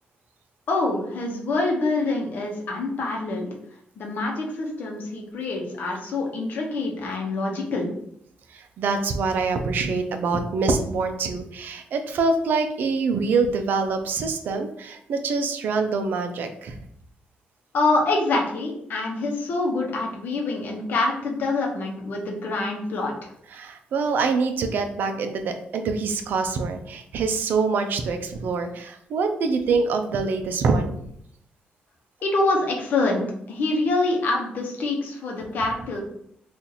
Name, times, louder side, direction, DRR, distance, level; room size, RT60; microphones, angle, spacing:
voice 1, 0.7-3.5 4.0-7.9 17.7-23.3 32.2-36.0, left 2 dB, 60° left, 0 dB, 0.8 m, -25 dB
voice 2, 8.5-16.7 23.5-31.0, right 4 dB, 65° right, 6 dB, 0.4 m, -25 dB
2.8 x 2.5 x 3.9 m, 0.71 s
cardioid pair, 130°, 3 cm